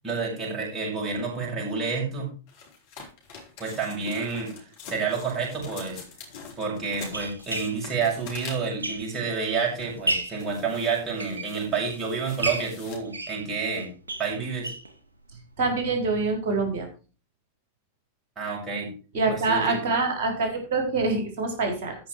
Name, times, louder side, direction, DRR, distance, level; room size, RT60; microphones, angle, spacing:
voice 1, 0.0-2.3 3.6-4.5 4.9-6.0 6.6-13.9 14.2-14.7 18.4-18.9 19.3-19.8, right 5 dB, 20° right, -3 dB, 6.6 m, -29 dB
sound 1, 2.5-8.9 9.5-10.0 10.4-13.0, left 5 dB, 50° left, 4.3 m, -44 dB
sound 2, 5.6-5.7 6.4-9.4 9.8-10.5 11.0-12.0 12.4-14.9 15.3-15.4 15.7-15.8 16.1-16.2, right 2 dB, 80° right, 1.5 m, -33 dB
voice 2, 15.6-16.9 19.1-22.0, right 3 dB, 50° right, 3 dB, 4.2 m, -25 dB
14.0 x 6.2 x 4.7 m, 0.35 s
figure-of-eight pair, 90°, 0 cm